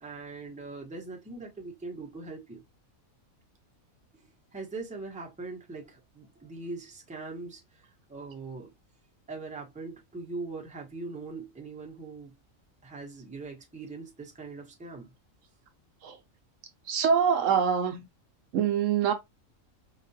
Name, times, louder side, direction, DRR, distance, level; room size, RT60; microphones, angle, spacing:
voice 1, 0.0-2.6 4.5-8.7 9.3-12.3 12.8-15.1, right 3 dB, 5° right, 0.7 m, -41 dB
voice 2, 16.9-18.0 18.5-19.1, right 7 dB, 70° right, 0.9 m, -24 dB
4.7 x 2.3 x 2.6 m
omnidirectional pair, 1.5 m